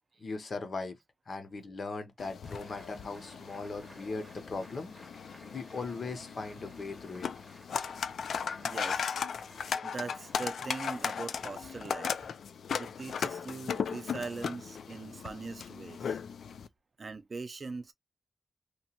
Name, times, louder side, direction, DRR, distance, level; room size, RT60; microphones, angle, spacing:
voice 1, 0.2-1.0 1.3-7.3, left 3 dB, 50° left, 0.6 m, -39 dB
sound 1, 2.2-16.7, left 6 dB, 85° left, 0.3 m, -37 dB
sound 2, 2.4-12.2, equal, ahead, 0.7 m, -56 dB
voice 2, 8.6-9.2 9.8-12.2 12.8-16.2 17.0-17.9, right 4 dB, 40° right, 0.5 m, -41 dB
2.9 x 2.2 x 2.8 m
wide cardioid pair, 145°, 0 cm